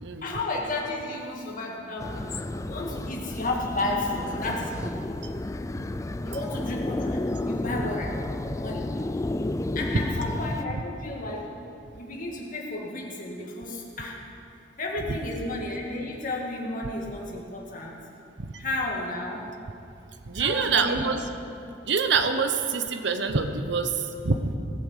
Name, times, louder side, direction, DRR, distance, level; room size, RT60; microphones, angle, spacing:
voice 1, 0.2-2.3 2.7-5.0 6.2-8.1 8.6-8.8 9.8-11.5 12.0-14.2 14.8-18.0 18.6-19.5 20.3-21.1, left 2 dB, 45° left, -2 dB, 2.2 m, -32 dB
sound 1, 2.0-10.6, left 2 dB, 15° left, 0.3 m, -31 dB
voice 2, 20.2-21.2 21.9-24.6, right 5 dB, 60° right, 7 dB, 0.9 m, -26 dB
18.0 x 8.0 x 7.4 m, 2.7 s
head